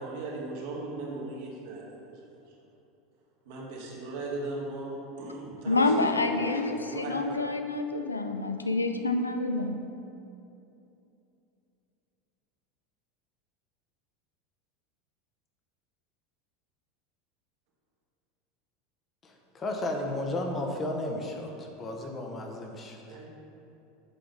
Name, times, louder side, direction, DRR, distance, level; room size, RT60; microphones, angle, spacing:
voice 1, 0.0-2.5 3.4-7.1 23.0-23.3, right 2 dB, 60° right, -4 dB, 1.9 m, -38 dB
voice 2, 5.7-9.7, left 3 dB, 85° left, 6 dB, 0.4 m, -27 dB
voice 3, 19.2-23.2, left 1 dB, 30° left, 2 dB, 1.2 m, -34 dB
7.6 x 5.2 x 5.2 m, 2.8 s
figure-of-eight pair, 80°, 0 cm